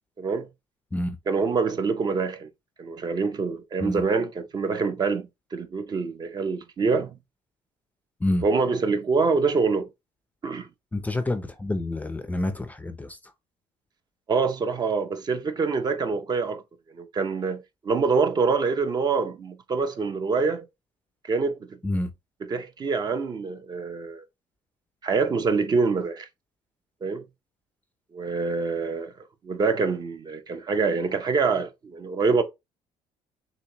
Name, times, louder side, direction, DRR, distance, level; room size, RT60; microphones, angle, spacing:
voice 1, 0.2-0.5 1.3-2.5 2.8-7.1 8.4-9.9 10.4-10.7 14.3-16.6 16.9-20.7 21.2-21.6 22.5-24.2 25.0-26.3 27.0-27.2 28.1-29.1 29.4-32.4, right 4 dB, 30° right, 0.7 m, -25 dB
voice 2, 10.9-13.3 21.8-22.1, left 1 dB, 10° left, 0.5 m, -28 dB
6.7 x 2.6 x 2.9 m
cardioid pair, 125°, 13 cm